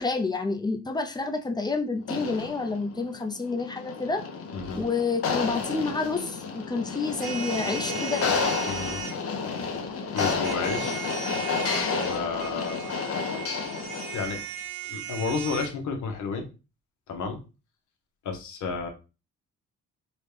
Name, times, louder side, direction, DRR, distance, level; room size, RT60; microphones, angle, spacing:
voice 1, 0.0-4.2 4.7-8.2, left 3 dB, 15° left, 4 dB, 0.5 m, -29 dB
sound 1, 2.0-14.4, left 5 dB, 50° left, 0.8 m, -31 dB
sound 2, 7.2-9.1 10.2-15.7, right 8 dB, 85° right, 1.3 m, -37 dB
voice 2, 8.6-9.0 10.1-11.0 12.0-13.0 14.1-14.4 14.8-16.5 17.1-17.4 18.2-18.9, left 4 dB, 75° left, 4 dB, 1.0 m, -31 dB
4.1 x 2.3 x 3.3 m, 0.31 s
cardioid pair, 90°, 30 cm